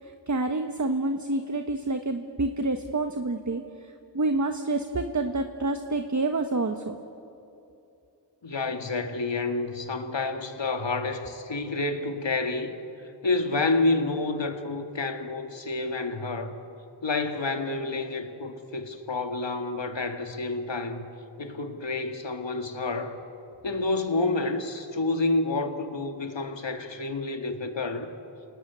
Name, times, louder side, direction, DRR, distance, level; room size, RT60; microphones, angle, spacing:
voice 1, 0.0-6.9, right 2 dB, 40° right, 6 dB, 1.3 m, -28 dB
voice 2, 8.4-12.7 13.2-16.5 17.0-21.1 21.4-23.2 23.6-28.1, left 3 dB, 75° left, 6 dB, 2.1 m, -29 dB
28.5 x 18.0 x 9.5 m, 2.8 s
wide cardioid pair, 50°, 44 cm